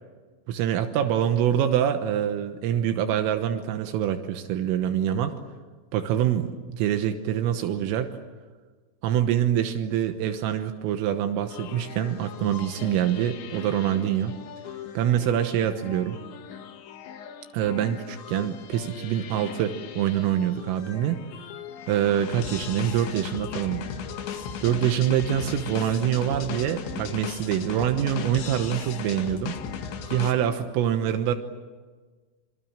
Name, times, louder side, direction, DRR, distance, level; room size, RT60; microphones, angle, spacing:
voice 1, 0.5-5.4 5.9-8.2 9.0-14.4 15.0-16.2 17.5-21.2 21.9-23.9 24.6-29.5 30.1-31.4, right 10 dB, 80° right, 7 dB, 3.8 m, -25 dB
sound 1, 11.5-30.3, left 7 dB, 65° left, 4.0 m, -38 dB
27.0 x 25.0 x 8.9 m, 1.4 s
omnidirectional pair, 5.9 m